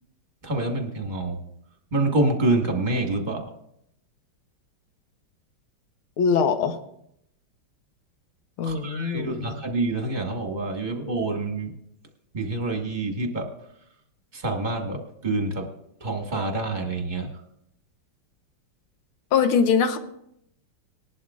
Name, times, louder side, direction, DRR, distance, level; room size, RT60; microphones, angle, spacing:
voice 1, 0.4-1.4 1.9-3.5 8.6-11.7 12.3-13.5 14.3-15.7 16.0-17.3, right 2 dB, 25° right, 2 dB, 1.4 m, -27 dB
voice 2, 6.2-6.8 8.6-9.5 19.3-20.0, left 6 dB, 80° left, 7 dB, 1.8 m, -22 dB
20.0 x 11.5 x 2.4 m, 0.75 s
omnidirectional pair, 2.3 m